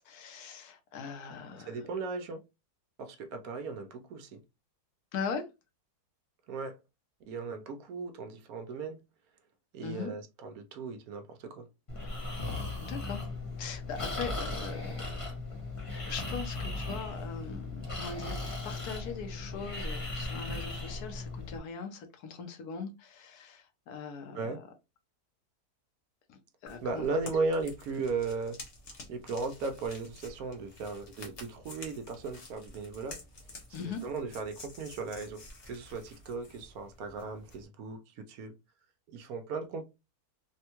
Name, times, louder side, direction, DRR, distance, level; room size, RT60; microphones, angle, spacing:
voice 1, 0.0-1.8 5.1-5.5 9.8-10.1 12.8-13.2 13.6-15.0 16.0-24.6 26.3-27.1 33.7-34.0, left 5 dB, 75° left, 1.2 m, -40 dB
voice 2, 1.6-2.4 3.0-4.4 6.5-6.8 7.2-9.0 9.7-11.7 24.3-24.6 26.8-28.6 29.1-33.2 33.8-38.5 39.1-39.8, right 4 dB, 70° right, 1.0 m, -36 dB
Breathing, 11.9-21.6, left 2 dB, 25° left, 0.9 m, -37 dB
sound 1, 26.7-37.7, left 2 dB, 50° left, 1.1 m, -50 dB
3.5 x 2.2 x 2.9 m
omnidirectional pair, 1.7 m